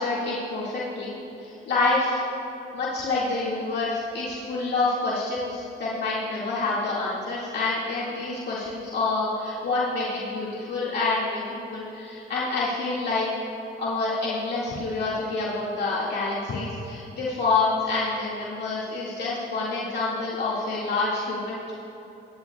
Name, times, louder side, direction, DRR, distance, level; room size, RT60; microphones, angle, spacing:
voice 1, 0.0-2.2 2.7-13.3 13.8-21.7, left 3 dB, 60° left, -7 dB, 2.2 m, -27 dB
21.5 x 10.5 x 2.4 m, 3.0 s
cardioid pair, 90°, 20 cm